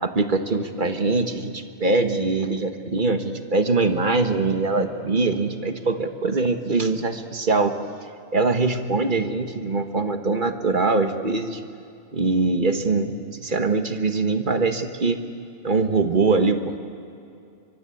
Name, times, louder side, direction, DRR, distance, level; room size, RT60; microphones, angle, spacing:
voice 1, 0.0-7.8 8.3-11.6 12.1-15.2 15.6-16.8, right 3 dB, 50° right, 7 dB, 1.5 m, -23 dB
24.0 x 23.5 x 8.5 m, 2.6 s
omnidirectional pair, 1.1 m